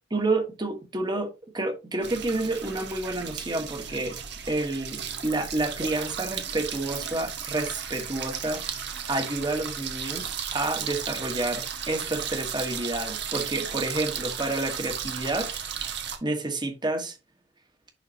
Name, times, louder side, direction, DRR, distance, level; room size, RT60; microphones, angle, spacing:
voice 1, 0.1-4.2 4.5-8.7 9.1-15.6 16.2-17.2, right 2 dB, 20° right, 1.4 m, -29 dB
sound 1, 2.0-16.2, right 7 dB, 55° right, 1.4 m, -35 dB
10.5 x 4.1 x 2.9 m
head